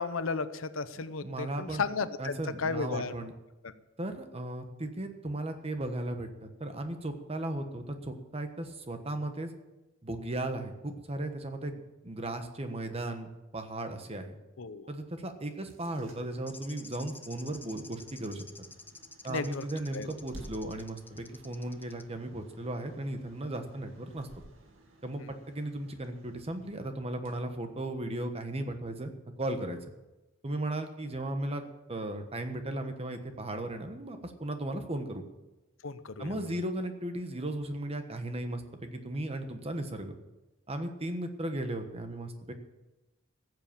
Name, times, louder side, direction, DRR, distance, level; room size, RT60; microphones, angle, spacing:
voice 1, 0.0-3.1 3.6-3.7 14.6-14.9 19.3-19.7 19.9-20.1 25.2-25.3 35.8-36.4, left 4 dB, 80° left, 13 dB, 0.7 m, -34 dB
voice 2, 1.2-1.8 2.2-3.3 4.0-9.5 10.0-14.4 14.9-18.4 19.2-24.3 25.0-29.1 29.4-29.9 30.4-31.6 31.9-35.2 36.2-40.2 40.7-42.5, right 1 dB, 30° right, 7 dB, 1.3 m, -36 dB
sound 1, 15.4-28.3, right 1 dB, 75° right, 2.1 m, -56 dB
sound 2, 16.5-22.0, left 3 dB, 10° left, 0.6 m, -49 dB
15.0 x 7.9 x 7.2 m, 1.0 s
head